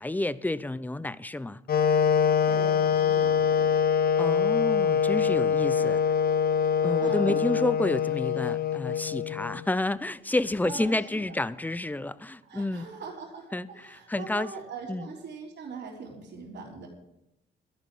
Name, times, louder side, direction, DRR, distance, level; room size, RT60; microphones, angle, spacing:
voice 1, 0.0-1.6 4.2-6.0 6.8-12.9 13.5-14.5 14.9-15.1, left 2 dB, 10° left, 0.6 m, -30 dB
Wind instrument woodwind instrument, 1.7-9.6, left 7 dB, 50° left, 0.8 m, -24 dB
voice 2, 2.5-3.7 7.0-7.6 10.6-11.0 11.2-11.4 12.4-16.9, right 5 dB, 60° right, 3.6 m, -41 dB
12.5 x 11.5 x 6.4 m
cardioid pair, 90°, 20 cm